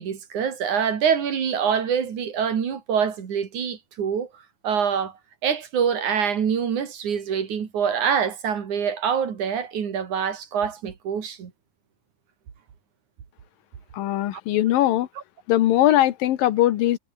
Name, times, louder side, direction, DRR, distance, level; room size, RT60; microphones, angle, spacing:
voice 1, 0.0-4.3 4.6-5.1 5.4-11.5, right 7 dB, 60° right, 4.0 m, -25 dB
voice 2, 13.9-15.1 15.5-17.0, left 14 dB, 90° left, 3.0 m, -20 dB
omnidirectional pair, 3.9 m